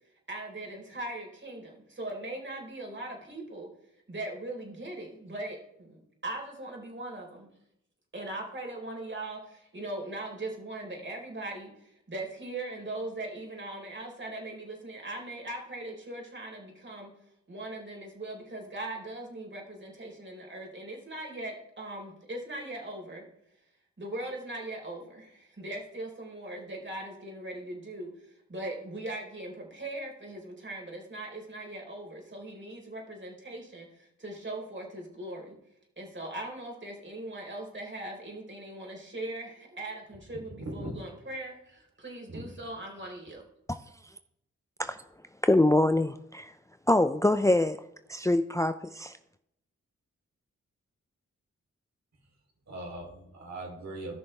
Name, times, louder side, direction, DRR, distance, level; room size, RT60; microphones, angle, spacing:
voice 1, 0.3-3.7 4.1-7.5 8.1-17.1 17.5-23.2 24.0-35.6 36.0-43.4, right 1 dB, 40° right, 0 dB, 4.2 m, -40 dB
voice 2, 40.5-41.0 42.3-42.5 52.7-54.2, right 1 dB, 65° right, 0 dB, 3.5 m, -39 dB
voice 3, 45.4-46.5 46.9-47.8 48.1-49.1, left 1 dB, 10° left, 10 dB, 0.5 m, -24 dB
18.0 x 6.3 x 3.4 m, 0.79 s
cardioid pair, 65°, 29 cm